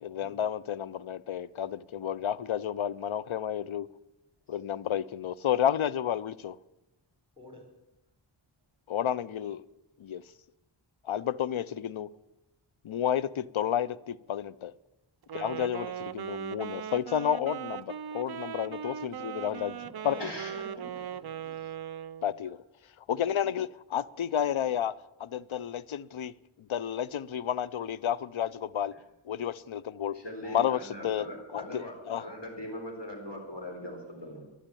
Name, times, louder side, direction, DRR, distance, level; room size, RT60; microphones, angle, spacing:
voice 1, 0.0-3.9 4.5-6.6 8.9-9.6 10.0-10.2 11.0-12.1 12.8-14.7 15.3-19.8 20.0-20.3 22.2-22.6 23.1-24.9 25.2-26.3 26.7-28.9 29.3-30.2 30.5-31.2 31.5-32.3, left 9 dB, 70° left, 0.6 m, -31 dB
Wind instrument woodwind instrument, 15.2-22.4, right 9 dB, 50° right, 0.5 m, -39 dB
voice 2, 18.6-18.9 19.7-21.6, left 1 dB, 10° right, 4.7 m, -52 dB
voice 3, 20.2-20.6 30.1-34.4, left 1 dB, 55° left, 4.2 m, -40 dB
11.5 x 11.5 x 8.5 m
wide cardioid pair, 45°, 49 cm